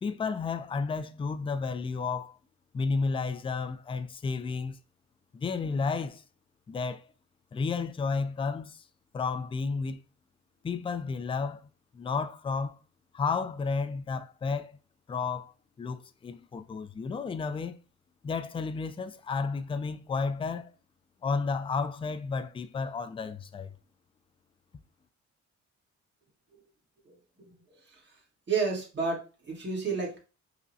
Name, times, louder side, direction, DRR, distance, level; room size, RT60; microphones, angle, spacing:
voice 1, 0.0-2.4 2.7-4.8 5.3-6.2 6.7-7.0 7.5-8.8 9.1-10.0 10.6-11.6 11.9-12.8 13.1-14.8 15.1-15.5 15.8-17.8 18.2-20.7 21.2-23.7, left 4 dB, 20° left, 0.3 m, -32 dB
voice 2, 27.0-28.2 28.5-30.2, right 5 dB, 35° right, 1.7 m, -32 dB
5.3 x 2.1 x 2.7 m
cardioid pair, 90°, 30 cm